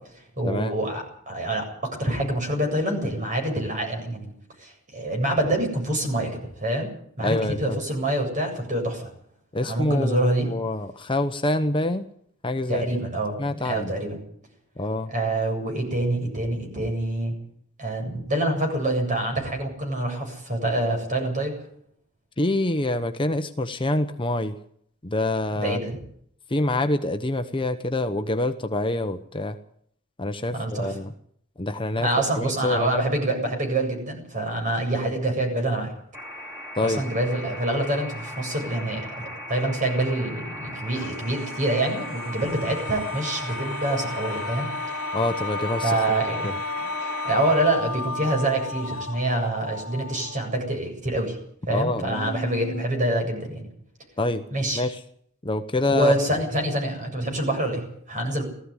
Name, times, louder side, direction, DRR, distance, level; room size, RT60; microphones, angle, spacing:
voice 1, 0.1-4.3 4.6-6.9 7.2-9.1 9.6-10.5 12.7-14.2 15.1-17.3 17.8-21.5 25.6-26.0 30.5-30.9 32.0-35.9 36.8-44.7 45.8-46.6 47.0-51.4 51.7-53.7 54.5-54.8 55.9-58.4, right 1 dB, 35° right, 3 dB, 7.8 m, -26 dB
voice 2, 7.2-7.8 9.5-12.1 12.4-12.8 13.4-13.9 14.8-15.1 22.4-24.6 25.0-25.8 26.5-29.6 30.2-31.1 31.6-32.1 32.4-33.0 36.7-37.0 45.1-46.0 46.4-46.5 51.7-52.3 54.2-54.4 54.7-55.0 55.4-56.4, left 2 dB, 25° left, 8 dB, 1.0 m, -26 dB
sound 1, 36.1-47.6, equal, 15° right, 7.0 m, -38 dB
sound 2, 40.9-50.5 51.8-51.9 52.1-52.8, left 3 dB, 80° left, 2.3 m, -34 dB
18.5 x 15.0 x 9.9 m, 0.66 s
head